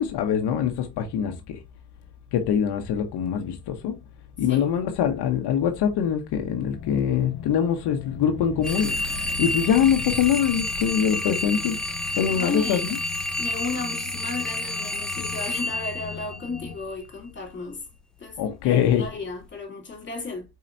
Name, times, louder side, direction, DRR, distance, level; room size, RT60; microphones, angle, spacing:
voice 1, 0.0-1.6 2.3-4.0 4.4-13.0 15.1-15.2 18.4-19.1, left 8 dB, 85° left, 1.0 m, -24 dB
sound 1, 6.6-16.8, left 6 dB, 60° left, 0.8 m, -41 dB
sound 2, 8.6-16.8, left 1 dB, ahead, 0.5 m, -30 dB
voice 2, 12.3-12.9 13.4-17.8 18.2-20.5, left 3 dB, 30° left, 3.0 m, -34 dB
4.8 x 4.3 x 2.6 m
cardioid pair, 110°, 39 cm